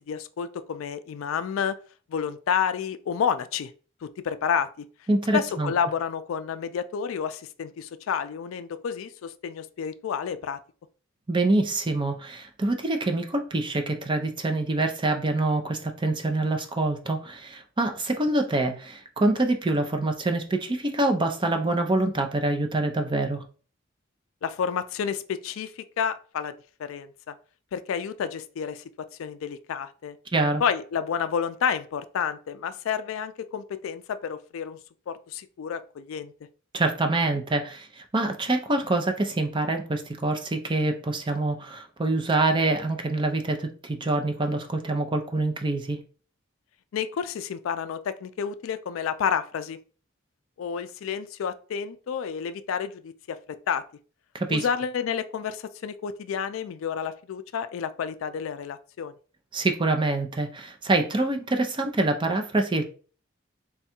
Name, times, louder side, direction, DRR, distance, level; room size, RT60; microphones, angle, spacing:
voice 1, 0.1-1.8 2.1-3.7 4.0-4.9 5.3-10.6 24.4-26.5 26.8-27.3 27.7-30.2 30.6-34.8 35.1-36.3 46.9-49.8 50.6-53.8 54.5-59.1, left 7 dB, 85° left, 0.3 m, -30 dB
voice 2, 5.1-5.7 11.3-23.4 30.3-30.6 36.7-46.0 54.3-54.6 59.5-62.8, right 2 dB, 25° right, 0.5 m, -25 dB
3.5 x 2.3 x 4.2 m
head